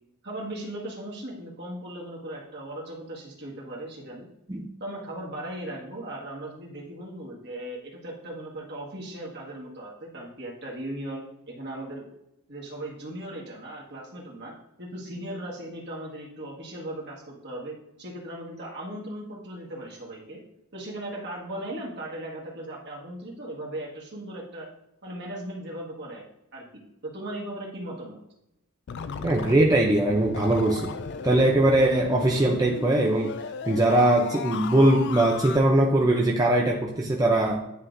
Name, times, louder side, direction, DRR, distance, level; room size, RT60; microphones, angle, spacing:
voice 1, 0.2-4.3 4.8-12.1 12.5-20.4 20.7-24.7 25.0-26.2 26.5-28.2, right 1 dB, 50° right, -2 dB, 1.6 m, -38 dB
quick sort, 28.9-35.6, left 5 dB, 55° left, 0.3 m, -36 dB
voice 2, 29.2-30.9 31.2-33.3 33.7-37.6, right 1 dB, 15° right, -1 dB, 0.5 m, -21 dB
9.9 x 3.7 x 2.6 m, 0.85 s
head